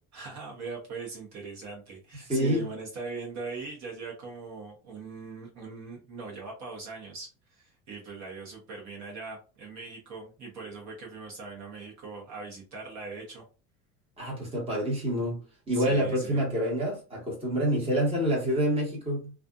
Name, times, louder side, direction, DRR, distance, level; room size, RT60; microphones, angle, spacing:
voice 1, 0.1-13.4 15.7-16.4, right 4 dB, 50° right, 1.0 m, -40 dB
voice 2, 2.3-2.7 14.2-15.4 15.7-19.3, equal, 15° right, 1.2 m, -27 dB
2.5 x 2.4 x 2.3 m
cardioid pair, 130°, 34 cm